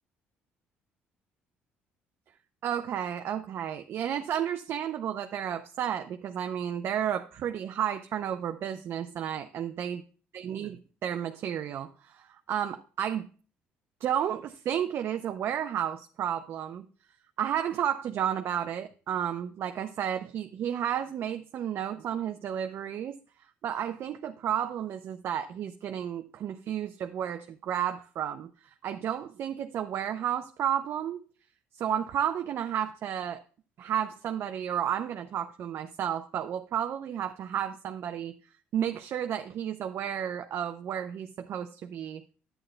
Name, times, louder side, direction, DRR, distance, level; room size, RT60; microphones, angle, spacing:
voice 1, 2.6-10.0 10.3-13.3 14.0-16.9 17.4-23.2 23.6-31.2 31.7-33.4 33.8-38.3 38.7-42.2, right 9 dB, 60° right, 7 dB, 0.5 m, -32 dB
11.0 x 8.9 x 2.2 m, 0.38 s
supercardioid pair, 80°, 4 cm